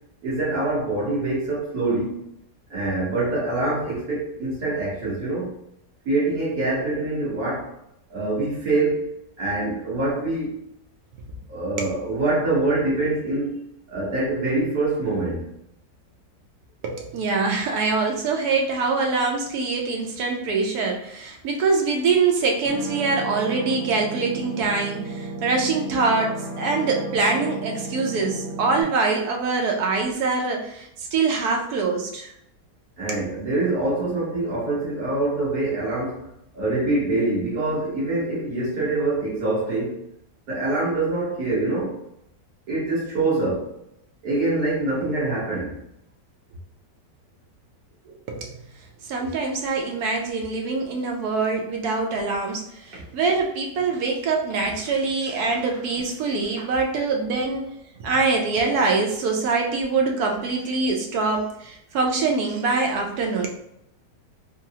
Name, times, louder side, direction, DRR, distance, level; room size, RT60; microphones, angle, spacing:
voice 1, 0.2-2.2 2.7-5.5 6.0-7.7 8.1-10.6 11.5-15.5 33.0-40.0 40.5-42.0 42.7-43.7 44.2-45.8 48.0-48.1, right 2 dB, 55° right, -6 dB, 1.7 m, -25 dB
voice 2, 16.8-32.3 33.1-33.2 48.3-48.6 49.0-57.7 58.0-63.5, right 4 dB, 70° right, 1 dB, 1.0 m, -24 dB
sound 1, 22.7-28.8, right 3 dB, 75° left, 1.4 m, -33 dB
3.7 x 2.0 x 2.7 m, 0.77 s
omnidirectional pair, 1.9 m